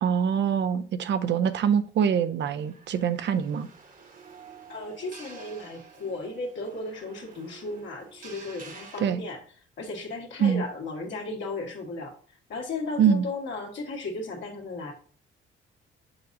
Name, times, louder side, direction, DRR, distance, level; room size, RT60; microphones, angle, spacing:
voice 1, 0.0-3.7 9.0-9.2 10.4-10.6 13.0-13.3, right 7 dB, 65° right, 0.6 m, -24 dB
sound 1, 2.6-9.0, right 5 dB, 45° right, 1.2 m, -49 dB
voice 2, 4.7-9.4 9.8-12.1 12.5-14.9, left 3 dB, 70° left, 1.9 m, -35 dB
6.9 x 5.3 x 2.6 m
cardioid pair, 90°, 20 cm